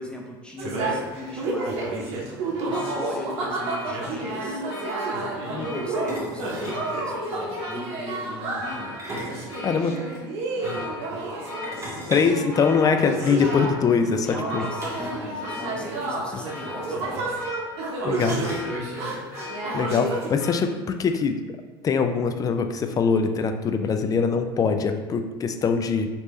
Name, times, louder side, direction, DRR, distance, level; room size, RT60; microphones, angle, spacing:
voice 1, 0.0-2.1 2.7-4.6 5.5-9.0 14.2-17.3, left 2 dB, 10° left, 0 dB, 0.7 m, -38 dB
sound 1, 0.6-20.3, right 2 dB, 55° right, 0.9 m, -30 dB
sound 2, 2.7-20.5, left 4 dB, 75° left, 1.0 m, -41 dB
sound 3, 4.0-4.3 6.1-6.9 8.8-10.2 11.6-13.3 14.8-15.3 15.5-15.6 16.0-16.1 17.1-17.2 18.1-19.0, equal, 25° right, 1.3 m, -37 dB
voice 2, 9.6-9.9 12.1-14.7 16.3-16.4 18.0-18.5 19.7-21.4 21.8-26.1, left 5 dB, 30° left, 7 dB, 0.4 m, -23 dB
3.2 x 2.9 x 3.1 m, 1.3 s
hypercardioid pair, 80°, 12 cm